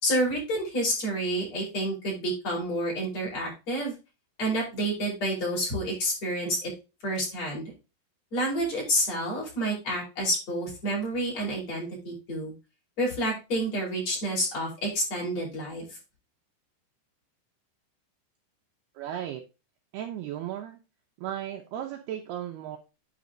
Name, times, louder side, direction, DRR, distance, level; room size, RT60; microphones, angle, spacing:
voice 1, 0.0-3.9 4.4-6.7 7.0-7.6 8.3-12.5 13.0-15.9, right 1 dB, 30° left, -3 dB, 5.8 m, -29 dB
voice 2, 18.9-19.4 19.9-20.8 21.2-22.8, right 11 dB, 85° right, 3 dB, 2.2 m, -35 dB
10.0 x 5.2 x 3.8 m, 0.28 s
omnidirectional pair, 5.8 m